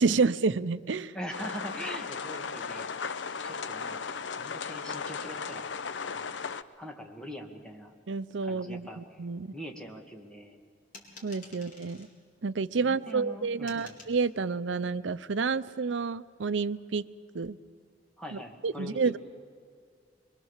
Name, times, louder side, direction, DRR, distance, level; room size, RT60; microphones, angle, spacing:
voice 1, 0.0-1.1 8.1-9.5 11.2-12.1 12.4-17.0 17.3-17.6 18.3-19.2, right 4 dB, 85° right, 15 dB, 0.6 m, -29 dB
voice 2, 1.1-2.9 3.4-4.1 4.4-5.8 6.1-6.4 6.8-7.9 8.4-9.2 9.5-10.6 11.5-11.6 12.8-14.0 18.2-19.2, equal, 5° left, 1 dB, 2.1 m, -42 dB
sound 1, 1.3-6.6, left 5 dB, 75° left, 0.7 m, -36 dB
sound 2, 10.9-12.1 13.7-14.2, left 3 dB, 45° left, 4.3 m, -50 dB
24.5 x 22.5 x 7.3 m, 2.2 s
head